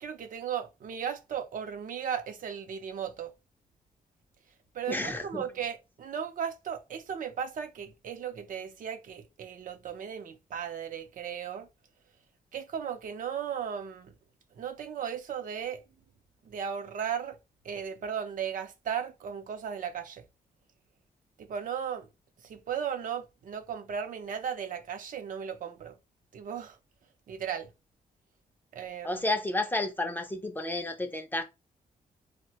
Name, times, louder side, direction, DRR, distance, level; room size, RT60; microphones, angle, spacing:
voice 1, 0.0-3.3 4.7-11.7 12.5-14.1 14.6-15.8 16.5-17.4 17.6-20.2 21.4-22.1 22.4-25.9 26.3-26.8 27.3-27.7 28.7-29.2, right 8 dB, 65° right, 0.6 m, -36 dB
voice 2, 4.9-5.5 29.0-31.4, left 2 dB, 15° left, 0.5 m, -31 dB
3.7 x 2.1 x 2.8 m
cardioid pair, 115°, 15 cm